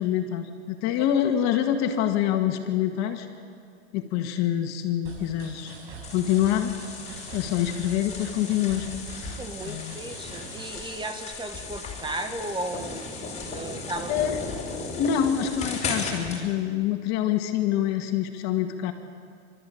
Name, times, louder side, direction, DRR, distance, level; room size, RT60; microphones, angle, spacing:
voice 1, 0.0-3.3 3.9-5.8 6.1-6.7 7.3-8.9 9.1-9.4 9.7-10.0 14.1-14.4 15.0-18.9, left 10 dB, 55° left, 5 dB, 2.2 m, -26 dB
sound 1, 5.0-10.7, right 4 dB, 60° right, 7.7 m, -43 dB
sound 2, 6.0-16.4, left 3 dB, 20° left, 6.0 m, -36 dB
voice 2, 9.4-13.1 13.5-14.1, right 2 dB, 15° right, 7 dB, 1.7 m, -35 dB
29.5 x 13.5 x 8.8 m, 2.2 s
hypercardioid pair, 110°, 33 cm